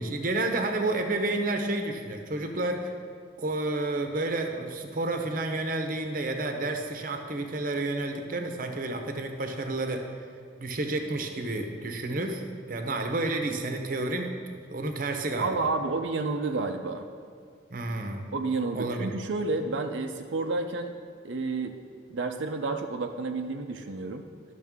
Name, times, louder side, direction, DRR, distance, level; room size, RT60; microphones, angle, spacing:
voice 1, 0.0-2.9 3.4-10.1 10.6-14.3 14.7-15.7 17.7-18.3 18.7-19.1, right 2 dB, 50° right, 5 dB, 0.7 m, -30 dB
voice 2, 15.4-17.1 18.3-20.9 21.2-21.8 22.1-24.3, right 3 dB, 90° right, 5 dB, 0.5 m, -30 dB
12.0 x 6.5 x 3.6 m, 2.1 s
head